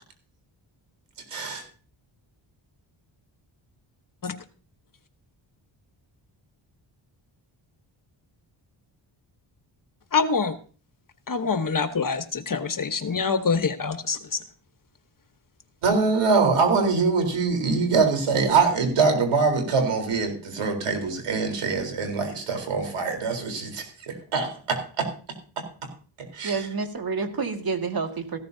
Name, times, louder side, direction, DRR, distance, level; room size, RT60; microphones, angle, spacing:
voice 1, 1.3-1.6 15.8-25.1 26.3-26.7, right 4 dB, 80° right, 4 dB, 4.0 m, -23 dB
voice 2, 10.1-10.6 11.3-14.4, left 5 dB, 40° left, 9 dB, 1.1 m, -25 dB
voice 3, 26.4-28.4, right 4 dB, 45° right, 5 dB, 2.0 m, -28 dB
15.0 x 13.5 x 2.7 m, 0.39 s
cardioid pair, 80°, 49 cm